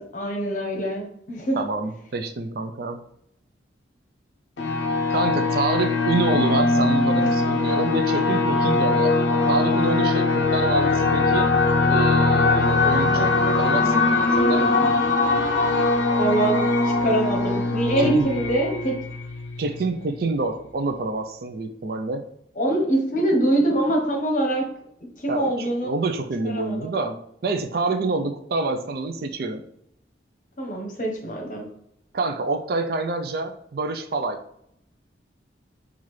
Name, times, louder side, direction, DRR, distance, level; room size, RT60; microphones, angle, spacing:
voice 1, 0.0-1.6 16.2-18.9 22.6-24.6 25.2-25.9 26.4-26.9 30.6-31.7, right 1 dB, 45° left, 0 dB, 0.9 m, -24 dB
voice 2, 1.5-3.0 5.1-9.1 9.5-11.5 11.9-14.8 18.0-18.3 19.6-22.2 25.3-29.6 32.1-34.4, right 3 dB, 55° right, 7 dB, 0.4 m, -27 dB
sound 1, 4.6-19.9, left 3 dB, 75° left, 0.5 m, -21 dB
5.6 x 2.4 x 3.2 m, 0.71 s
head